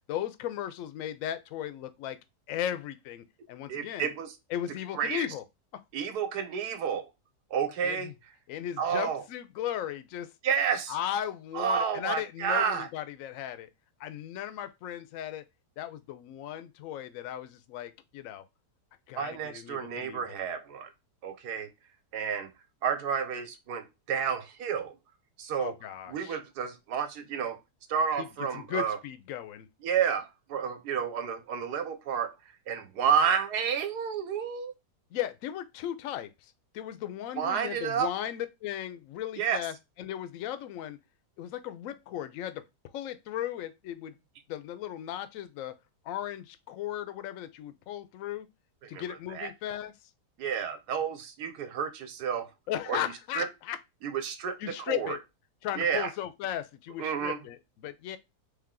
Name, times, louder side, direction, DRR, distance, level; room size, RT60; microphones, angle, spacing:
voice 1, 0.1-2.2 2.5-4.1 4.5-5.4 5.7-5.8 7.8-8.1 8.5-10.3 10.9-13.7 14.0-15.4 15.8-18.4 19.1-20.4 25.6-26.4 28.2-29.7 35.1-41.0 41.4-44.1 44.5-45.7 46.0-48.5 48.9-49.9 52.7-53.8 54.6-55.2 55.6-58.2, left 11 dB, 70° left, 0.8 m, -36 dB
voice 2, 3.7-4.3 4.9-5.2 5.9-7.1 7.5-8.1 8.8-9.2 10.4-11.0 11.5-12.9 19.2-20.9 21.2-21.7 22.1-22.5 22.8-24.9 25.4-25.7 26.1-27.6 27.9-29.0 29.8-32.3 32.7-34.7 37.4-38.1 39.4-39.6 48.8-49.0 49.3-49.5 50.4-52.5 52.9-53.0 53.4-53.5 54.0-55.2 55.8-56.1 57.0-57.4, right 7 dB, 75° right, 1.3 m, -30 dB
3.4 x 3.2 x 3.7 m
omnidirectional pair, 1.8 m